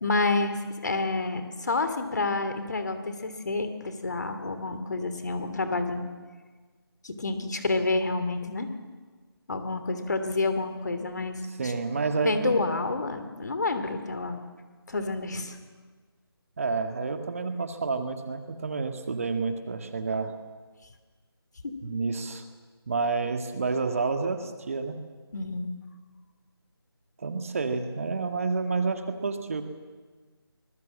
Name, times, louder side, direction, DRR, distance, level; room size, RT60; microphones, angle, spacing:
voice 1, 0.0-6.0 7.0-8.7 9.5-11.7 12.2-14.4 14.9-15.6 21.6-21.7 25.3-25.7, left 3 dB, 45° left, 9 dB, 2.9 m, -29 dB
voice 2, 11.6-12.6 16.6-20.4 21.8-22.4 22.9-25.0 27.2-29.6, right 4 dB, 35° right, 7 dB, 2.0 m, -29 dB
25.0 x 21.0 x 7.4 m, 1.4 s
figure-of-eight pair, 160°, 13 cm